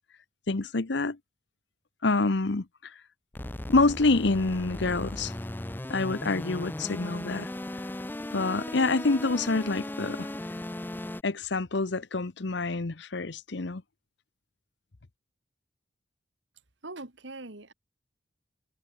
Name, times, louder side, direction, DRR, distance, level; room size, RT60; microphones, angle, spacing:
voice 1, 0.5-1.2 2.0-2.9 3.7-5.3 5.9-7.5 8.3-10.3 11.2-13.8, left 3 dB, 65° left, 0.9 m, -27 dB
sound 1, 3.3-11.2, left 1 dB, 10° left, 0.4 m, -37 dB
voice 2, 16.8-17.7, right 2 dB, 70° right, 2.3 m, -42 dB
head